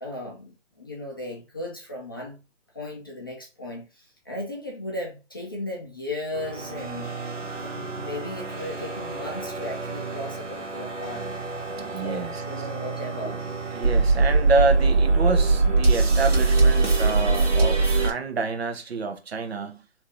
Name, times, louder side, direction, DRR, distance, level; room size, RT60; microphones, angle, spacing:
voice 1, 0.0-2.4 2.7-7.1 7.6-11.3 12.0-13.4, left 1 dB, 20° left, 0.5 m, -36 dB
sound 1, 6.3-18.1, right 3 dB, 85° right, 1.4 m, -23 dB
voice 2, 11.8-12.4 13.2-13.3 13.7-19.9, right 3 dB, 60° right, 0.8 m, -28 dB
3.5 x 2.8 x 3.1 m
figure-of-eight pair, 150°, 36 cm